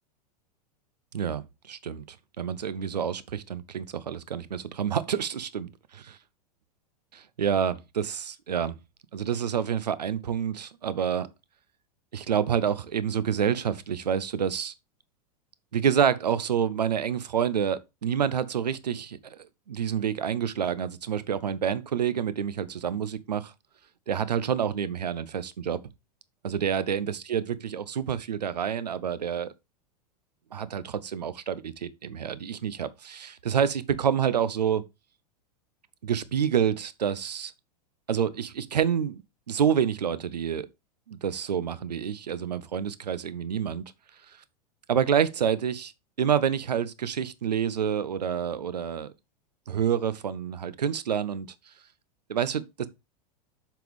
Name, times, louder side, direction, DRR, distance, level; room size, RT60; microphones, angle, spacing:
voice 1, 1.1-5.7 7.1-8.8 9.1-11.3 12.1-14.7 15.7-23.5 24.1-25.8 26.4-29.5 30.5-34.8 36.0-37.5 38.1-39.2 39.5-40.7 41.1-43.8 44.9-45.9 46.2-49.1 49.7-51.5 52.3-52.9, right 8 dB, 75° right, 0.7 m, -28 dB
7.5 x 5.3 x 3.4 m
figure-of-eight pair, 95°, 21 cm